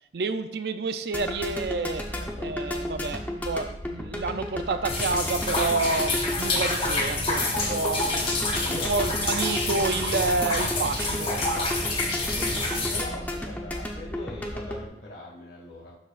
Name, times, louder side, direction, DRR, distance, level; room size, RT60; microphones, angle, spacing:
voice 1, 0.1-2.1 2.4-7.4 7.7-8.1 8.7-11.3, right 3 dB, 60° right, 10 dB, 0.4 m, -29 dB
sound 1, 1.1-14.9, left 1 dB, 10° left, 0.7 m, -33 dB
voice 2, 2.1-2.6 7.3-9.0 11.5-11.9 12.3-16.0, left 1 dB, 65° left, -5 dB, 2.4 m, -41 dB
sound 2, 4.9-13.0, left 2 dB, 35° left, 1.7 m, -28 dB
12.0 x 4.5 x 2.5 m, 0.79 s
head